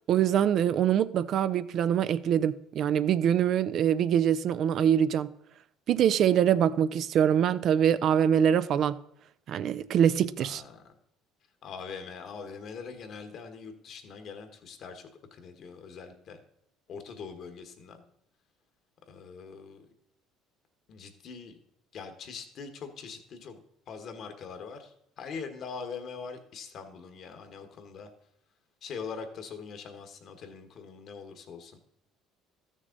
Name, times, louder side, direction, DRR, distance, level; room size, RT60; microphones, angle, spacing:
voice 1, 0.1-5.3 5.9-9.0 9.5-10.6, right 9 dB, 60° right, 0.4 m, -24 dB
voice 2, 10.4-10.8 11.6-16.4 16.9-18.1 19.1-19.9 20.9-21.6 21.9-23.6 23.9-28.1 28.8-31.8, left 5 dB, 55° left, 1.4 m, -42 dB
13.5 x 6.4 x 3.9 m
supercardioid pair, 80°, 0 cm